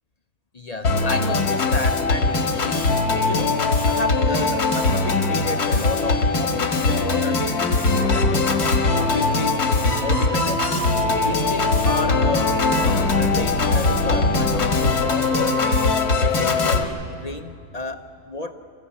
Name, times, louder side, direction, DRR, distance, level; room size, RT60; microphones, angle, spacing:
voice 1, 0.5-8.5 8.9-9.8 10.0-15.8 16.2-18.5, left 2 dB, 40° left, 7 dB, 0.5 m, -32 dB
Organ, 0.8-16.8, left 3 dB, 80° left, 2.0 m, -20 dB
27.5 x 14.5 x 8.4 m, 2.4 s
omnidirectional pair, 1.6 m